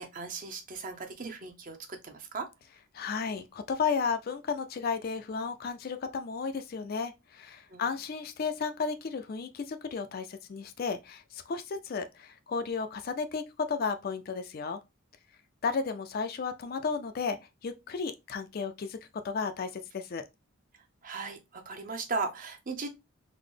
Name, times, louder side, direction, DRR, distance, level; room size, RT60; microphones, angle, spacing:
voice 1, 0.0-2.5 7.7-7.9 21.0-22.9, right 4 dB, 40° right, 0.6 m, -37 dB
voice 2, 2.9-14.8 15.6-19.0 19.2-20.2, left 5 dB, 45° left, 0.3 m, -33 dB
3.8 x 2.0 x 3.2 m
head